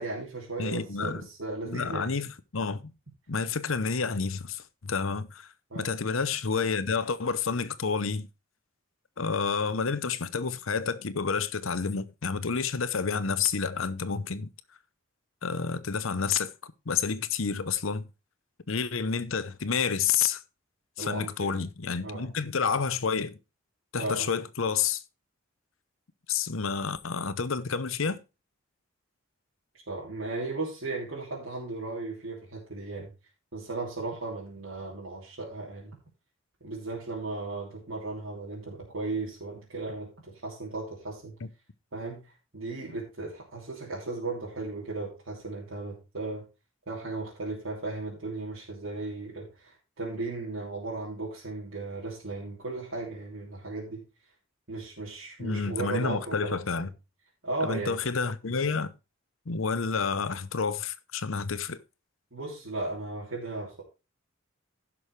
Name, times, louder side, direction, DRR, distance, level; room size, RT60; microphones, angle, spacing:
voice 1, 0.0-2.1 5.7-5.9 21.0-21.6 22.0-22.3 24.0-24.3 29.7-33.1 33.5-36.0 36.6-41.3 41.9-46.5 46.9-54.0 54.7-56.9 57.4-58.0 62.3-63.8, right 3 dB, 80° right, 3.1 m, -36 dB
voice 2, 0.6-1.2 1.6-2.9 3.3-5.5 5.7-8.3 9.2-14.5 15.4-16.5 16.9-18.1 18.7-20.4 21.0-23.4 23.9-25.0 26.3-28.2 41.4-41.5 55.4-56.9 57.6-58.9 59.5-61.8, left 5 dB, 75° left, 0.8 m, -29 dB
16.0 x 6.2 x 3.3 m
head